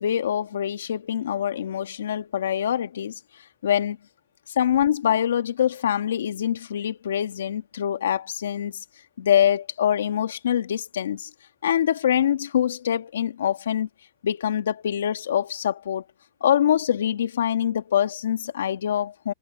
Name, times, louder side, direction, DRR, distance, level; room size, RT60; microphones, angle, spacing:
voice 1, 0.0-3.2 3.6-4.0 4.6-8.8 9.2-11.3 11.6-13.9 14.2-16.0 16.4-19.3, left 9 dB, 80° left, 1.9 m, -24 dB
hypercardioid pair, 140°, 0 cm